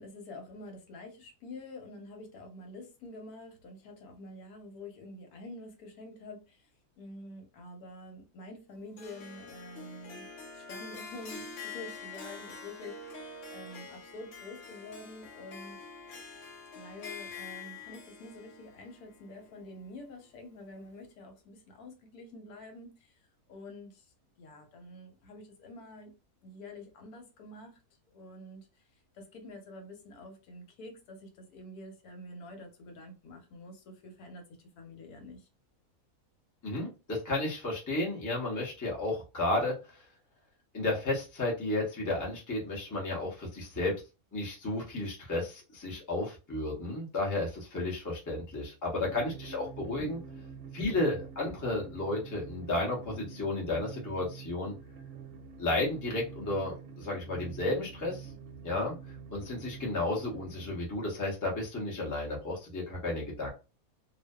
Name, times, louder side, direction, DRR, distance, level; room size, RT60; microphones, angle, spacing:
voice 1, 0.0-6.7 7.0-10.3 10.5-15.8 16.7-23.2 23.5-24.1 24.4-26.1 26.4-27.8 28.1-28.7 29.1-35.5, left 2 dB, 85° left, 1.2 m, -47 dB
Harp, 9.0-20.2, left 4 dB, 65° left, 0.9 m, -46 dB
voice 2, 36.6-40.0 40.7-43.9 44.3-50.2 50.7-54.7 55.6-58.3 58.6-58.9 59.3-63.5, left 2 dB, 20° left, 0.5 m, -33 dB
sound 1, 49.0-60.8, right 6 dB, 70° right, 0.9 m, -47 dB
2.5 x 2.2 x 2.2 m
omnidirectional pair, 1.6 m